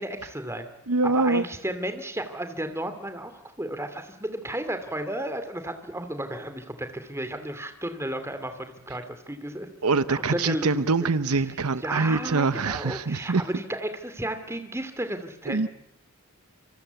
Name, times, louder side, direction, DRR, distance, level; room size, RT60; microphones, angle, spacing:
voice 1, 0.0-0.7 1.0-9.7 10.1-10.8 11.3-11.4 11.8-15.7, right 1 dB, 10° right, 9 dB, 2.4 m, -33 dB
voice 2, 0.9-1.4 9.8-13.4 15.5-15.7, right 3 dB, 80° right, 14 dB, 0.9 m, -24 dB
26.5 x 25.0 x 8.2 m, 0.87 s
head